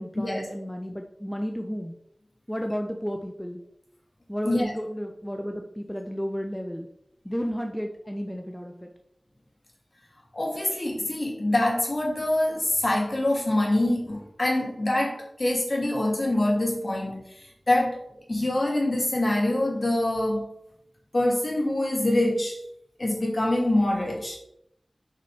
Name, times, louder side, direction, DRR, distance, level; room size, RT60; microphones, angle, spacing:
voice 1, 0.0-1.9 2.5-3.6 4.3-6.9 7.2-8.9, equal, 5° left, 3 dB, 0.8 m, -32 dB
voice 2, 10.3-17.4 17.7-18.0 18.3-20.4 21.1-22.6 23.0-24.4, left 1 dB, 50° left, -2 dB, 2.8 m, -25 dB
6.5 x 6.1 x 4.2 m, 0.75 s
wide cardioid pair, 55°, 0 cm